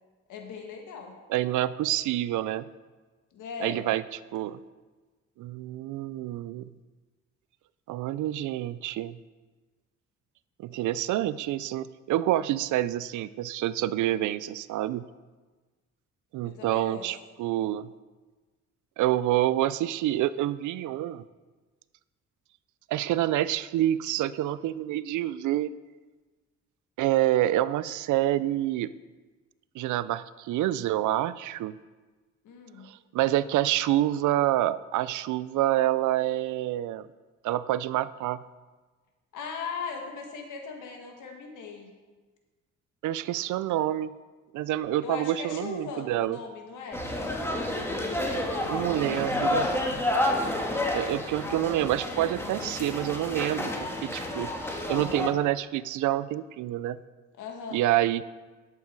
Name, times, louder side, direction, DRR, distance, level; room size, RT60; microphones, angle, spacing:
voice 1, 0.3-1.2 3.3-3.8 16.5-17.2 32.4-32.9 39.3-41.9 45.0-47.0 47.8-49.0 57.4-57.8, left 5 dB, 85° left, 2 dB, 2.0 m, -39 dB
voice 2, 1.3-2.6 3.6-4.0 4.3-4.6 5.4-6.7 7.9-9.2 10.6-15.0 16.3-17.9 19.0-21.2 22.9-25.7 27.0-28.9 29.7-31.7 32.8-37.1 37.4-38.4 43.0-44.1 44.5-46.4 48.7-50.0 50.9-57.0 57.7-58.2, right 14 dB, 75° right, 17 dB, 0.5 m, -27 dB
sound 1, 46.9-55.3, left 1 dB, 10° left, 1.6 m, -30 dB
11.5 x 7.7 x 4.6 m, 1.3 s
cardioid pair, 90°, 30 cm